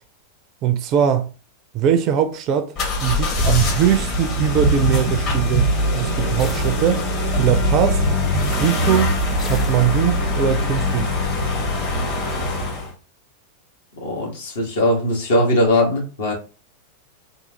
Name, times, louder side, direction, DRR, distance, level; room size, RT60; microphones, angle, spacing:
voice 1, 0.6-1.3 1.7-2.7 3.0-7.0 7.4-8.0 8.5-9.1 9.4-11.1, right 9 dB, 35° right, 0.4 m, -21 dB
sound 1, 2.8-12.9, left 1 dB, 40° left, 1.6 m, -22 dB
sound 2, 6.4-7.4 9.4-10.5, left 3 dB, 20° left, 0.7 m, -35 dB
voice 2, 14.0-16.3, left 1 dB, 60° left, 1.4 m, -19 dB
3.7 x 2.7 x 2.8 m
figure-of-eight pair, 90°, 0 cm